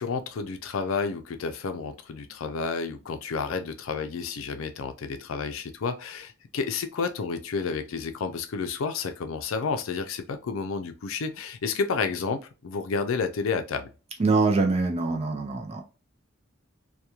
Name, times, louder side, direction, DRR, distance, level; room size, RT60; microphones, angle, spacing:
voice 1, 0.0-13.9, left 5 dB, 85° left, 0.4 m, -30 dB
voice 2, 14.2-15.8, right 3 dB, 30° right, 0.4 m, -24 dB
2.9 x 2.2 x 2.3 m
head